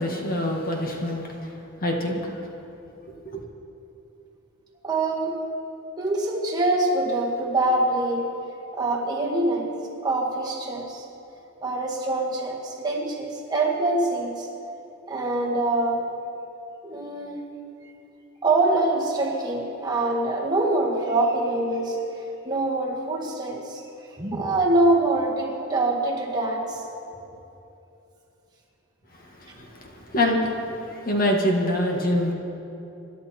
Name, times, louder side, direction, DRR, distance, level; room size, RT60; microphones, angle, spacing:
voice 1, 0.0-1.3 1.8-2.4 3.3-3.4 29.4-30.5 30.9-32.3, left 1 dB, 45° left, 1 dB, 1.8 m, -25 dB
voice 2, 4.8-5.4 6.0-8.3 8.7-9.7 10.0-11.0 11.6-14.5 15.1-16.1 16.8-17.4 18.4-22.0 22.4-23.8 24.2-26.9, right 2 dB, 20° right, -2 dB, 1.8 m, -24 dB
26.0 x 11.5 x 4.5 m, 2.9 s
head